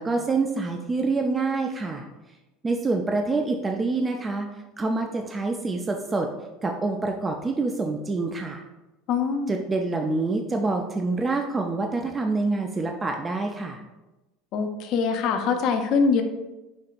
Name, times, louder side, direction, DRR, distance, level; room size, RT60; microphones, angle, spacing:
voice 1, 0.0-2.1 2.6-4.5 4.8-6.3 6.6-8.6 9.5-13.8, right 3 dB, 20° right, 3 dB, 0.3 m, -26 dB
voice 2, 9.1-9.6 14.5-16.2, left 5 dB, 60° left, 6 dB, 0.5 m, -23 dB
5.2 x 2.8 x 2.4 m, 1.1 s
supercardioid pair, 95°, 0 cm